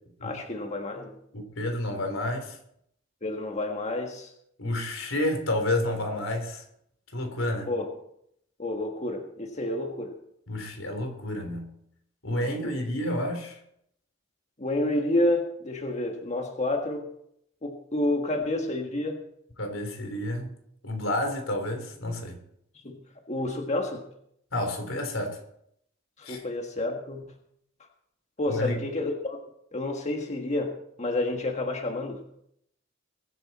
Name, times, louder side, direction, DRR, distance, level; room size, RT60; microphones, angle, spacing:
voice 1, 0.2-1.1 3.2-4.3 7.7-7.9 8.6-10.1 12.4-12.8 14.6-17.1 17.6-19.2 22.8-23.0 23.3-24.0 26.2-27.2 28.4-29.4 29.7-32.2, left 1 dB, 35° left, 3 dB, 1.6 m, -29 dB
voice 2, 1.3-2.6 4.6-6.6 7.1-7.7 10.5-11.7 12.2-13.6 19.6-20.5 20.8-22.4 24.5-25.4 26.2-26.4 28.5-28.8, left 1 dB, 85° left, 5 dB, 3.5 m, -30 dB
22.0 x 10.0 x 4.2 m, 0.72 s
head